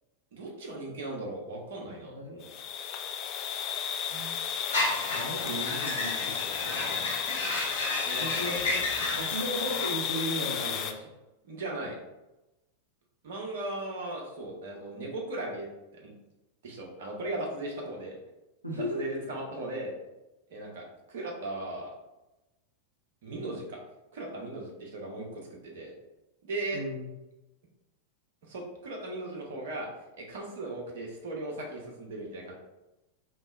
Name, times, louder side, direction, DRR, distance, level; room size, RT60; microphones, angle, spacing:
voice 1, 0.3-2.1 8.1-8.5 11.4-12.0 13.2-16.1 16.6-18.2 18.7-19.9 20.5-21.9 23.2-23.8 24.1-25.9 26.4-26.8 28.4-29.9 30.2-32.5, right 2 dB, 55° right, -1 dB, 0.8 m, -37 dB
voice 2, 2.0-2.6 4.1-4.4 5.1-7.1 8.2-11.2 18.6-19.3 26.7-27.1, equal, 90° right, -4 dB, 0.6 m, -36 dB
sound 1, 2.4-10.9, left 8 dB, 40° left, 0.3 m, -33 dB
sound 2, 4.7-9.9, left 2 dB, 60° left, 1.3 m, -33 dB
3.8 x 2.9 x 2.4 m, 1.0 s
figure-of-eight pair, 90°, 0 cm